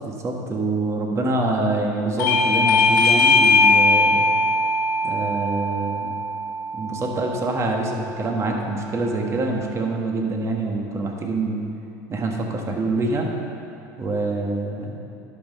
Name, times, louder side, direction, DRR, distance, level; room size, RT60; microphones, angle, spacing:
voice 1, 0.0-4.2 5.0-6.1 6.7-11.6 12.1-13.3 14.0-15.0, right 2 dB, 30° right, 1 dB, 1.5 m, -25 dB
Bell / Doorbell, 2.2-7.4, left 3 dB, 80° left, 1.0 m, -19 dB
10.5 x 5.7 x 5.4 m, 2.6 s
supercardioid pair, 100°, 10 cm